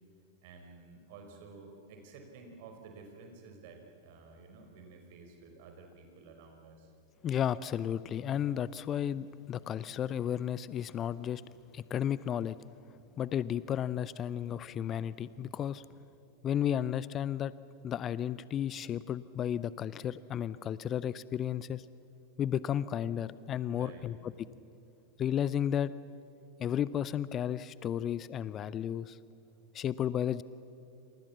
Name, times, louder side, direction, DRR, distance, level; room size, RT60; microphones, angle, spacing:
voice 1, 0.4-6.9 23.8-24.0, right 4 dB, 50° right, 4 dB, 5.1 m, -52 dB
voice 2, 7.2-11.4 11.7-12.6 13.2-15.8 16.4-17.5 17.8-21.8 22.4-24.2 25.2-25.9 26.6-29.2 29.7-30.4, left 10 dB, 30° left, 18 dB, 0.6 m, -33 dB
28.0 x 27.5 x 7.2 m, 2.7 s
figure-of-eight pair, 90°, 0 cm